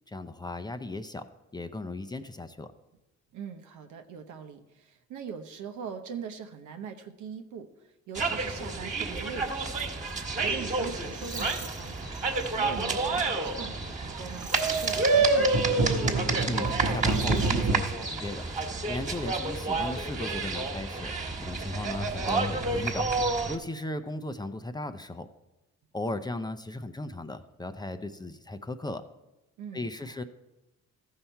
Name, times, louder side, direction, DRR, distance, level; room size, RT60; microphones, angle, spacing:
voice 1, 0.1-1.3 1.5-2.7 16.5-18.5 18.9-25.3 25.9-29.0 29.7-30.2, left 2 dB, 15° left, 9 dB, 0.5 m, -36 dB
voice 2, 3.3-9.9 10.4-12.2 12.5-15.9 29.6-30.2, right 6 dB, 80° right, 7 dB, 0.9 m, -42 dB
sound 1, 8.1-23.6, right 3 dB, 25° right, 1.5 m, -29 dB
sound 2, 10.2-11.8 12.1-12.6 13.1-13.4 13.8-17.7, right 3 dB, 50° right, 1.1 m, -30 dB
14.0 x 5.7 x 4.5 m, 1.0 s
cardioid pair, 90°, 30 cm